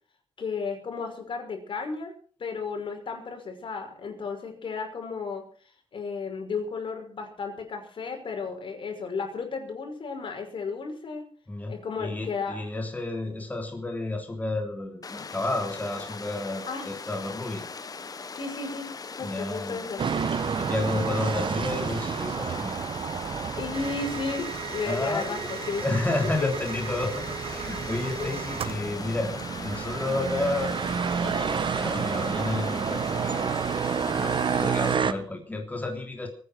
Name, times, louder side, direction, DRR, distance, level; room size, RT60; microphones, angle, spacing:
voice 1, 0.4-2.1 2.4-5.4 5.9-11.2 11.7-12.6 16.6-16.8 18.4-20.0 23.6-25.8 27.7-27.9 28.2-28.4, left 4 dB, 65° left, 4 dB, 5.8 m, -33 dB
voice 2, 11.5-17.6 19.2-19.8 20.5-22.8 24.8-25.4 25.8-29.3 29.6-30.7 31.2-33.5 34.1-36.3, left 2 dB, 15° left, 2 dB, 3.3 m, -31 dB
Water, 15.0-35.0, left 4 dB, 40° left, 1.5 m, -40 dB
sound 1, 20.0-35.1, right 6 dB, 60° right, 1.2 m, -30 dB
sound 2, 23.7-28.9, right 8 dB, 90° right, 0.9 m, -37 dB
23.5 x 9.8 x 6.2 m, 0.43 s
wide cardioid pair, 115°, 9 cm